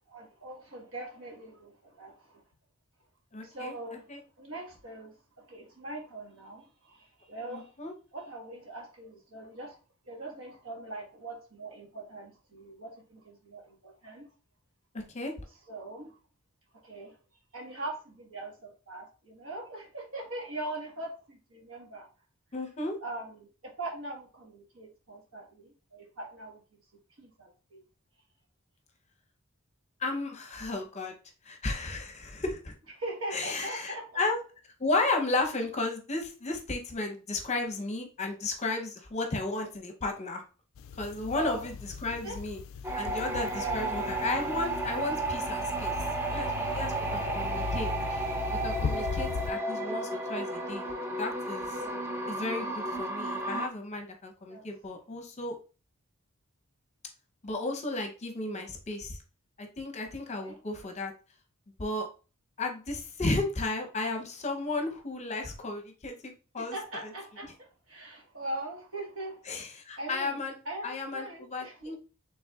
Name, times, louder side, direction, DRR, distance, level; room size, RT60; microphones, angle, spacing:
voice 1, 0.1-2.4 3.4-4.0 4.4-5.1 5.5-7.7 8.1-9.8 10.1-14.3 15.7-16.2 16.8-17.1 17.5-22.1 23.0-26.6 27.2-27.8 33.0-34.2 41.2-41.7 42.2-42.4 43.5-44.1 47.2-47.4 49.0-49.1 51.8-52.0 54.5-54.7 60.3-60.6 66.6-70.4 70.6-71.8, right 2 dB, 70° right, 1.4 m, -41 dB
voice 2, 3.3-3.7 4.1-4.2 7.5-7.9 14.9-15.3 22.5-23.0 30.0-31.1 31.4-32.7 33.3-34.4 34.8-40.4 41.0-41.7 42.0-42.6 42.9-45.9 46.3-48.3 48.6-50.9 51.2-51.8 52.3-55.6 57.4-59.2 59.6-61.1 61.8-62.1 62.6-67.1 69.5-70.5 70.8-72.0, left 2 dB, 35° left, 0.8 m, -34 dB
sound 1, 40.8-49.5, left 6 dB, 70° left, 0.3 m, -38 dB
sound 2, 42.8-53.7, right 2 dB, 10° right, 0.5 m, -33 dB
5.3 x 3.4 x 2.4 m
head